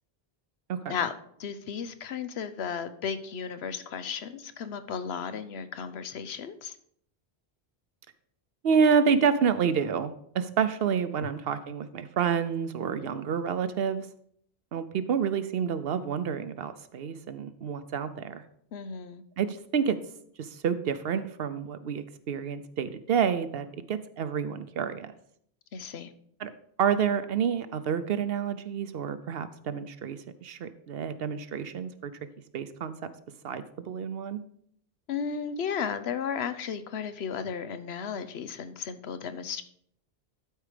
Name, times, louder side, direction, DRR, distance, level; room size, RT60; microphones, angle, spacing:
voice 1, 1.4-6.8 11.2-11.3 18.7-19.2 25.7-26.1 35.1-39.6, left 7 dB, 90° left, 11 dB, 1.0 m, -34 dB
voice 2, 8.6-14.1 14.7-18.4 19.4-20.0 20.4-25.1 26.4-26.5 26.8-32.1 32.5-33.1 33.4-34.4, right 7 dB, 70° right, 12 dB, 0.9 m, -28 dB
12.5 x 4.6 x 5.0 m, 0.67 s
omnidirectional pair, 1.0 m